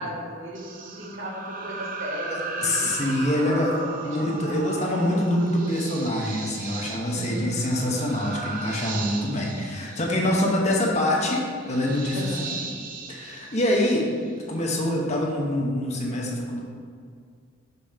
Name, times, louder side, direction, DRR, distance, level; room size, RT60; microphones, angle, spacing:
voice 1, 0.0-4.3 7.1-7.6 12.1-12.7, equal, 85° right, -4 dB, 1.5 m, -36 dB
sound 1, 0.5-14.4, right 4 dB, 45° right, 0.6 m, -37 dB
voice 2, 2.3-12.6 13.1-14.1 14.5-16.6, left 1 dB, 35° left, -2 dB, 1.0 m, -25 dB
5.6 x 5.2 x 4.2 m, 2.1 s
head